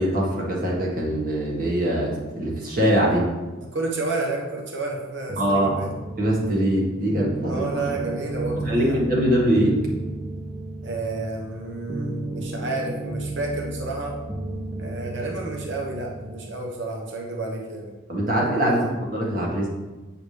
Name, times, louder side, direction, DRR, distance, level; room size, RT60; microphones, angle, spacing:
voice 1, 0.0-3.3 5.4-5.7 6.2-7.9 8.6-9.8 18.1-19.7, right 1 dB, 45° right, -4 dB, 1.7 m, -23 dB
voice 2, 3.7-5.9 7.4-9.0 10.8-14.2 14.8-17.9 18.7-18.9, right 2 dB, 65° right, 0 dB, 1.0 m, -30 dB
sound 1, 5.3-16.5, right 2 dB, 20° right, 0.6 m, -33 dB
8.3 x 4.9 x 3.4 m, 1.2 s
head